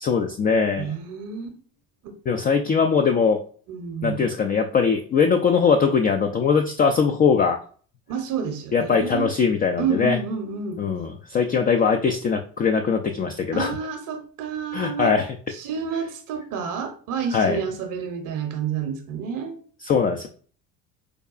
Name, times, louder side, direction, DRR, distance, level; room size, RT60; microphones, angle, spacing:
voice 1, 0.0-0.9 2.3-3.4 4.0-7.6 8.7-10.2 10.8-13.8 14.7-15.3 17.3-17.6 19.8-20.3, left 5 dB, 25° left, 0.3 m, -21 dB
voice 2, 0.8-1.6 2.0-2.1 3.7-4.3 8.1-9.3 9.8-10.8 13.5-15.1 15.5-19.6, right 6 dB, 55° right, 0.8 m, -29 dB
4.7 x 2.3 x 2.3 m
hypercardioid pair, 70°, 39 cm